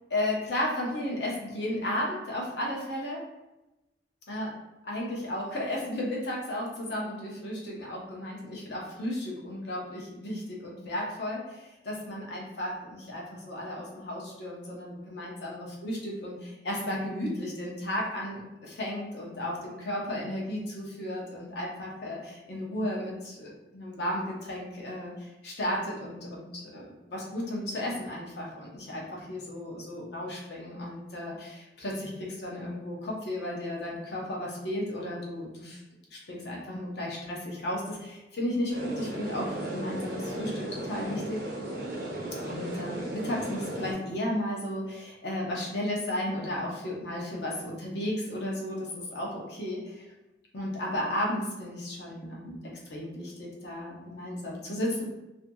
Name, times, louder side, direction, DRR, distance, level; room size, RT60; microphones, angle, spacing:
voice 1, 0.1-3.2 4.3-4.5 4.8-35.8 36.1-41.4 42.4-50.0 50.5-52.6 52.9-55.0, left 1 dB, 60° left, -3 dB, 0.7 m, -34 dB
sound 1, 38.7-43.9, right 1 dB, 55° right, 0.6 m, -35 dB
2.6 x 2.2 x 2.6 m, 0.99 s
head